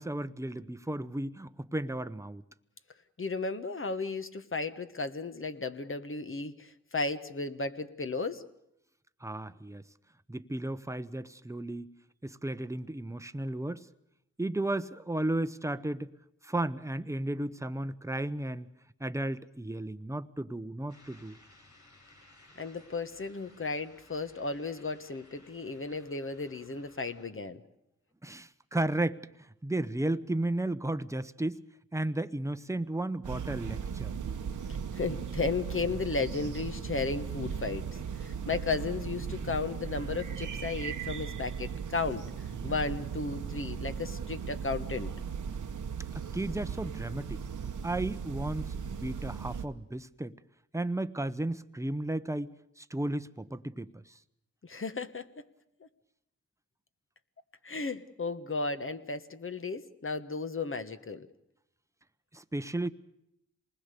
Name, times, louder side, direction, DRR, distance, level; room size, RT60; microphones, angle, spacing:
voice 1, 0.0-2.4 9.2-9.8 10.3-11.9 12.2-13.9 14.4-16.1 16.4-18.7 19.0-21.4 28.2-31.6 31.9-34.1 46.1-47.4 47.8-50.4 50.7-52.5 52.8-54.2 62.3-62.9, right 1 dB, 10° right, 12 dB, 0.9 m, -34 dB
voice 2, 3.2-8.5 22.6-27.6 34.9-37.9 38.2-42.3 42.6-45.1 54.6-55.3 57.6-61.3, left 3 dB, 45° left, 10 dB, 1.4 m, -34 dB
sound 1, 20.9-27.3, left 2 dB, 70° left, 5.5 m, -59 dB
sound 2, 33.2-49.6, right 7 dB, 85° right, 1.3 m, -37 dB
27.0 x 20.0 x 6.9 m, 0.81 s
cardioid pair, 65°, 30 cm